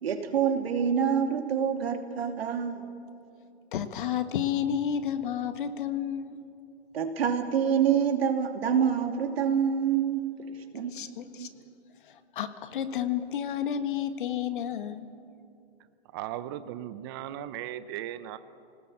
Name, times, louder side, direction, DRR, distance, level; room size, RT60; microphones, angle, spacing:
voice 1, 0.0-2.9 6.9-10.3 10.7-11.1 11.3-11.6, right 7 dB, 65° right, 2.8 m, -26 dB
voice 2, 3.7-6.4 10.9-11.5 12.0-15.0, left 9 dB, 50° left, 1.7 m, -31 dB
voice 3, 16.1-18.4, right 12 dB, 20° right, 0.6 m, -37 dB
28.0 x 19.0 x 8.6 m
hypercardioid pair, 155°, 32 cm